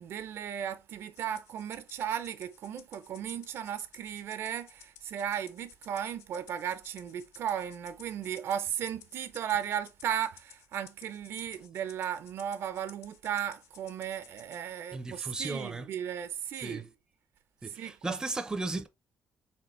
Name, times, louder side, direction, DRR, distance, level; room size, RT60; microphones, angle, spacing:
voice 1, 0.0-16.9 17.7-18.2, right 9 dB, 65° right, 0.5 m, -36 dB
Rattle (instrument), 1.1-14.6, left 9 dB, 85° left, 0.6 m, -56 dB
voice 2, 14.9-15.9 16.6-16.9 17.6-18.9, right 3 dB, 15° right, 0.5 m, -35 dB
4.3 x 3.6 x 3.0 m
cardioid pair, 145°, 5 cm